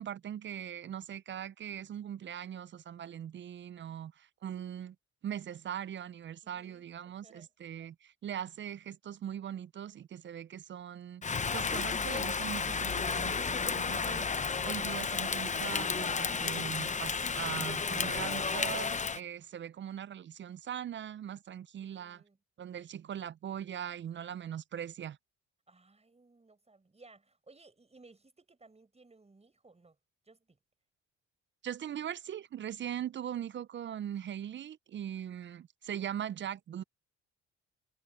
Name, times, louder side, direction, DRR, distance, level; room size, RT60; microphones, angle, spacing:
voice 1, 0.0-5.0 5.2-22.2 22.6-25.2 31.6-36.8, right 9 dB, 40° right, 0.4 m, -41 dB
voice 2, 6.4-7.5 21.8-22.4 25.7-30.0 30.3-30.6, right 3 dB, 20° right, 5.2 m, -60 dB
Rain, 11.2-19.2, left 5 dB, 25° left, 0.7 m, -32 dB
cardioid pair, 90°, 30 cm